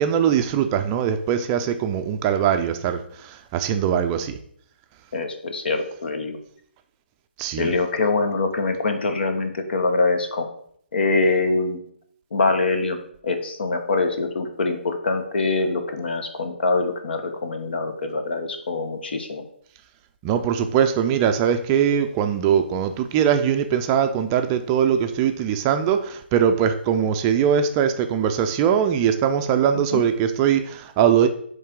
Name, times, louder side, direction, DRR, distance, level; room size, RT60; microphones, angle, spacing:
voice 1, 0.0-4.4 7.4-7.7 20.2-31.3, right 8 dB, 25° right, 7 dB, 0.4 m, -21 dB
voice 2, 5.1-6.4 7.6-10.5 10.9-11.8 12.3-19.4 29.9-30.0, left 3 dB, 65° left, 6 dB, 1.0 m, -24 dB
8.4 x 3.2 x 3.7 m, 0.64 s
hypercardioid pair, 145°, 6 cm